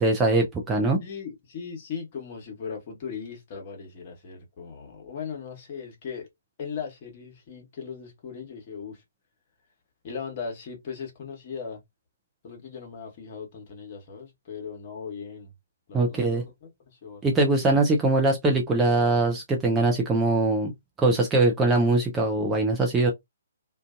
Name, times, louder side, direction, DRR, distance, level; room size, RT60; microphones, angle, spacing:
voice 1, 0.0-1.0 15.9-16.4 17.2-20.7 21.0-23.1, right 2 dB, 10° right, 0.5 m, -22 dB
voice 2, 1.0-6.3 6.6-9.0 10.0-11.8 12.4-15.5 15.9-17.8, left 6 dB, 40° left, 1.1 m, -38 dB
2.5 x 2.3 x 2.4 m
figure-of-eight pair, 130°, 0 cm